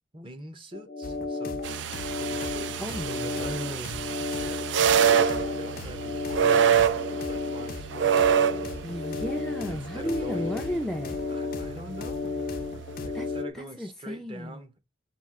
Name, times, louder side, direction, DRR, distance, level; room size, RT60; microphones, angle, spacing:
voice 1, 0.1-1.7 2.1-3.6 4.3-8.7 9.6-10.6 11.3-12.3 13.0-14.7, right 1 dB, 25° right, 0.8 m, -44 dB
sound 1, 0.7-13.5, left 4 dB, 80° left, 0.8 m, -34 dB
sound 2, 1.0-13.1, left 3 dB, 50° left, 0.5 m, -42 dB
sound 3, 1.6-13.4, right 8 dB, 65° right, 0.3 m, -27 dB
voice 2, 2.8-4.1 8.8-11.2 13.1-13.3 13.5-14.6, equal, ahead, 0.5 m, -34 dB
4.3 x 2.5 x 3.6 m
head